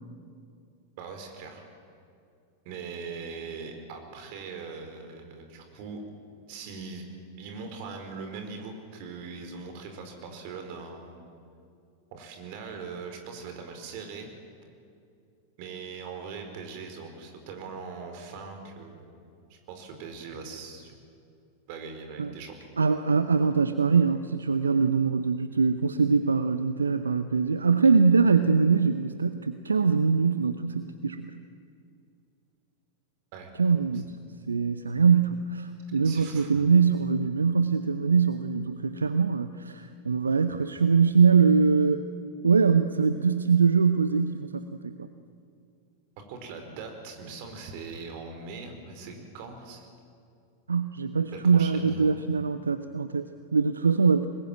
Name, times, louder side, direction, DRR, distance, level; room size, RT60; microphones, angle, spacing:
voice 1, 1.0-1.6 2.6-6.0 6.5-7.0 7.4-11.2 12.1-14.3 15.6-19.2 19.5-21.0 21.7-22.5 33.3-33.5 36.0-36.6 46.2-49.9 51.3-52.4, right 4 dB, 45° right, 5 dB, 4.6 m, -41 dB
voice 2, 22.8-31.3 33.6-34.1 34.5-42.1 42.4-45.1 50.7-54.3, right 5 dB, 75° right, 11 dB, 0.8 m, -23 dB
25.0 x 20.5 x 9.1 m, 2.4 s
figure-of-eight pair, 90°, 0 cm